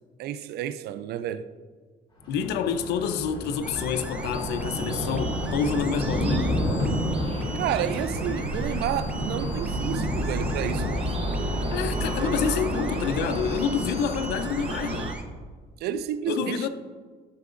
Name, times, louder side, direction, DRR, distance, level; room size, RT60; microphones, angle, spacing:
voice 1, 0.2-1.5 7.5-11.1 15.8-16.7, right 10 dB, 70° right, 0.4 m, -30 dB
Thunder, 2.2-13.4, left 1 dB, 30° left, 2.1 m, -31 dB
voice 2, 2.3-6.6 11.7-15.1 16.3-16.7, left 7 dB, 80° left, 0.5 m, -28 dB
sound 1, 3.6-15.2, right 1 dB, 5° right, 0.6 m, -43 dB
sound 2, 4.1-15.1, right 2 dB, 35° right, 0.9 m, -32 dB
11.5 x 5.7 x 2.5 m
cardioid pair, 110°, 17 cm